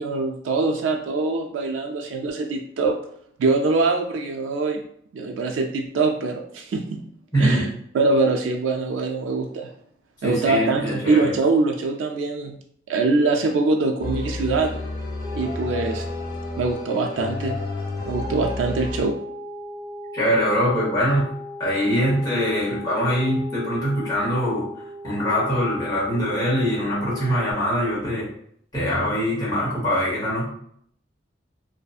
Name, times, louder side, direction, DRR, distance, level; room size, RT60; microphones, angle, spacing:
voice 1, 0.0-3.0 3.4-4.8 5.1-7.0 7.4-7.7 7.9-9.7 10.2-12.6 12.9-14.8 15.3-16.1 16.6-17.5 18.0-19.1, right 3 dB, 90° right, 3 dB, 0.3 m, -23 dB
voice 2, 7.3-7.7 10.2-11.3 20.1-21.3 21.6-24.7 25.0-28.3 28.7-30.5, equal, 20° left, -7 dB, 1.0 m, -23 dB
sound 1, 14.0-19.0, left 2 dB, 45° left, 0.8 m, -31 dB
sound 2, 15.2-27.5, left 3 dB, 20° right, 1.0 m, -37 dB
2.6 x 2.4 x 2.3 m, 0.66 s
head